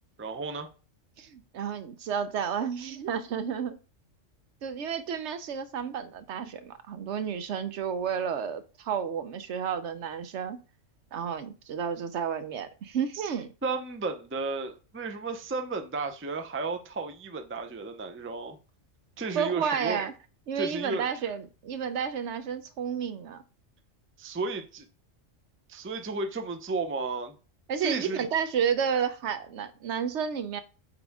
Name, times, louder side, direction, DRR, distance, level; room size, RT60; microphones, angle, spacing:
voice 1, 0.2-0.7 13.1-13.3 13.6-18.6 19.2-20.0 20.5-21.1 24.2-24.9 25.7-27.3 27.8-28.3, right 3 dB, 15° right, 0.4 m, -33 dB
voice 2, 1.2-3.8 4.6-10.6 11.1-13.5 19.3-20.1 20.5-23.4 27.7-30.6, right 7 dB, 65° right, 0.9 m, -31 dB
8.4 x 3.5 x 3.5 m
omnidirectional pair, 1.3 m